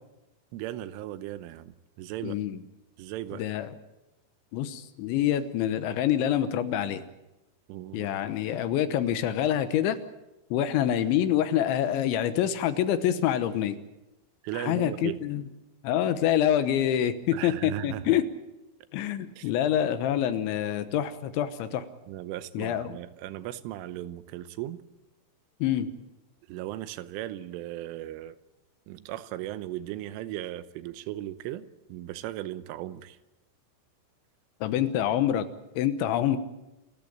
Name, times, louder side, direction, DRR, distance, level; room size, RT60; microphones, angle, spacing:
voice 1, 0.5-2.4 3.0-3.4 7.7-8.1 14.4-15.2 17.3-18.2 19.4-19.5 22.1-24.8 26.5-28.4 28.9-33.2, right 13 dB, 85° right, 13 dB, 3.4 m, -37 dB
voice 2, 2.2-2.6 3.3-3.7 4.5-7.0 7.9-10.0 10.5-13.8 14.5-15.4 15.8-18.2 18.9-21.9 22.5-23.0 25.6-25.9 34.6-35.5 35.8-36.4, left 10 dB, 75° left, 11 dB, 3.3 m, -26 dB
28.0 x 14.0 x 8.9 m, 0.97 s
omnidirectional pair, 5.6 m